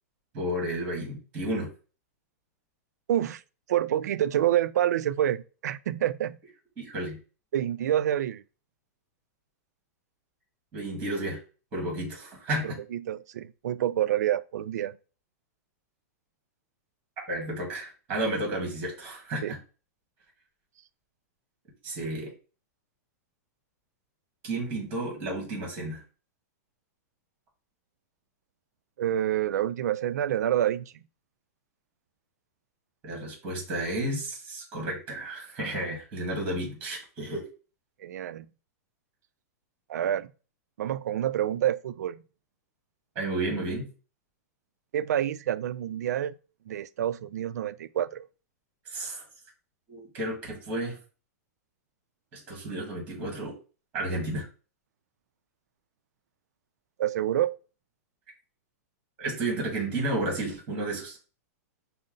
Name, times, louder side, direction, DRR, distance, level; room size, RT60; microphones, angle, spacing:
voice 1, 0.3-1.7 6.8-7.2 10.7-11.4 11.7-12.8 17.3-19.6 21.8-22.3 24.4-26.0 33.0-37.5 43.1-43.9 48.8-49.2 49.9-51.0 52.3-53.5 53.9-54.5 59.2-61.2, right 1 dB, 20° right, 1.6 m, -32 dB
voice 2, 3.1-3.4 3.7-6.4 7.5-8.4 12.6-15.0 19.4-19.6 29.0-30.9 38.0-38.5 39.9-40.3 40.8-42.2 44.9-46.3 46.7-48.3 57.0-57.6, right 11 dB, 90° right, 0.4 m, -27 dB
5.3 x 2.0 x 3.8 m
supercardioid pair, 170°, 9 cm